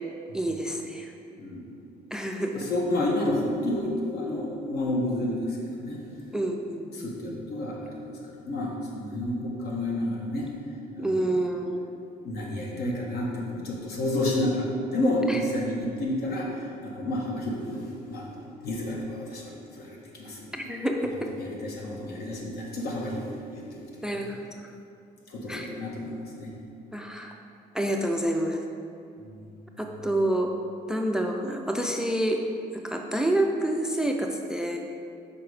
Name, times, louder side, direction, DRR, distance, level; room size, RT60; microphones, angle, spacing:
voice 1, 0.3-1.1 2.1-2.6 6.3-7.4 11.0-11.9 15.3-15.4 20.7-21.3 24.0-24.4 25.5-25.7 26.9-27.3 27.7-28.6 29.8-30.5 30.9-32.4 32.8-34.8, right 1 dB, 5° right, 3 dB, 0.4 m, -28 dB
voice 2, 1.4-1.7 2.5-6.1 6.9-10.5 10.9-11.4 12.2-18.3 18.6-20.6 21.3-24.1 25.3-26.5 29.2-29.5 29.8-29.9, left 1 dB, 70° left, -2 dB, 1.3 m, -30 dB
5.9 x 4.2 x 4.8 m, 2.5 s
cardioid pair, 110°, 17 cm